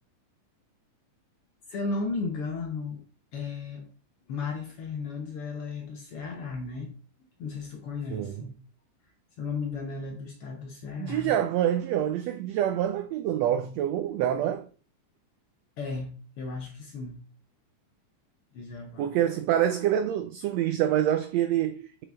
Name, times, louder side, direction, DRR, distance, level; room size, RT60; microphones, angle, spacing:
voice 1, 1.7-3.0 3.3-3.9 4.3-6.9 7.4-8.6 9.4-11.3 15.8-17.2 18.5-19.1, left 4 dB, 60° left, 1.5 m, -35 dB
voice 2, 11.0-14.6 19.0-22.1, right 11 dB, 85° right, 1.5 m, -26 dB
7.5 x 5.8 x 3.4 m
omnidirectional pair, 3.6 m